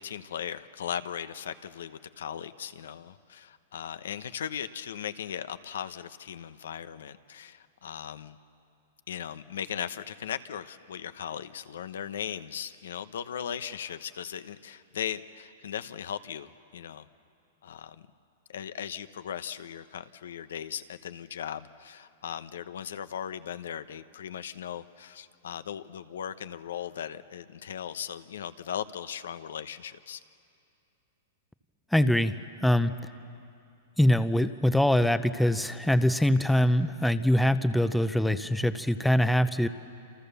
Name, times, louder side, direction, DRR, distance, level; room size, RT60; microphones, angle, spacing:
voice 1, 0.0-8.4 9.1-17.0 17.6-18.0 18.5-30.2, left 9 dB, 90° left, 12 dB, 0.9 m, -38 dB
voice 2, 31.9-32.3 32.6-32.9 34.0-39.7, left 1 dB, ahead, 12 dB, 0.6 m, -23 dB
28.0 x 27.5 x 6.9 m, 2.6 s
supercardioid pair, 155°, 0 cm